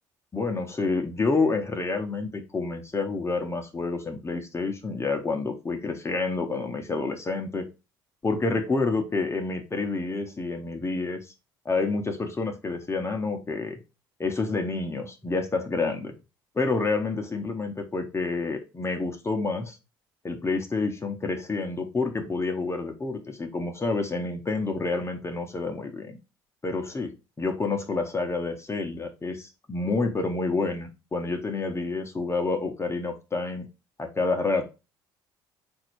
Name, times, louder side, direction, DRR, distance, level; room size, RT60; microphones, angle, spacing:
voice 1, 0.3-7.6 8.2-11.2 11.6-13.8 14.2-16.1 16.6-19.8 20.2-26.2 26.6-27.1 27.4-33.7 34.0-34.6, left 3 dB, 25° left, 4 dB, 0.9 m, -28 dB
4.0 x 2.6 x 4.5 m, 0.28 s
hypercardioid pair, 60°, 12 cm